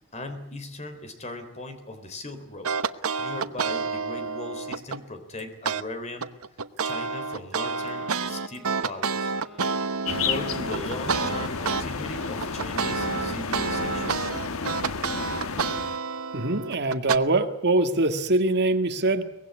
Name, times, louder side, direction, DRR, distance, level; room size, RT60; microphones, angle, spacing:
voice 1, 0.1-2.7 3.2-6.3 6.8-9.3 10.2-14.2, left 2 dB, 30° left, 8 dB, 3.6 m, -38 dB
sound 1, 2.6-5.0 5.6-5.8 6.2-11.8 12.2-17.2, right 5 dB, 90° right, 1.0 m, -29 dB
Wind instrument woodwind instrument, 7.5-10.5, equal, ahead, 3.9 m, -49 dB
sound 2, 10.0-16.0, left 5 dB, 80° left, 1.3 m, -31 dB
voice 2, 16.3-19.2, right 2 dB, 55° right, 7 dB, 1.9 m, -23 dB
23.5 x 19.5 x 9.7 m, 0.80 s
head